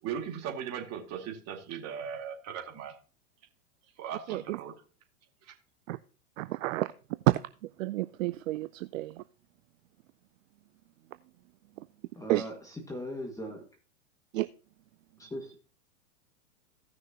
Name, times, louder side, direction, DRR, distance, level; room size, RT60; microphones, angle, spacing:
voice 1, 0.0-3.0 4.0-4.7 5.4-5.5, right 8 dB, 35° right, 2.3 m, -38 dB
voice 2, 4.3-4.6 5.9-6.0 6.4-6.9 7.3-9.2 11.8-11.9 12.3-12.5 14.3-14.5, right 18 dB, 60° right, 0.5 m, -30 dB
voice 3, 12.2-13.6 15.2-15.7, equal, 5° left, 1.7 m, -39 dB
16.5 x 6.3 x 2.8 m
hypercardioid pair, 110°, 44 cm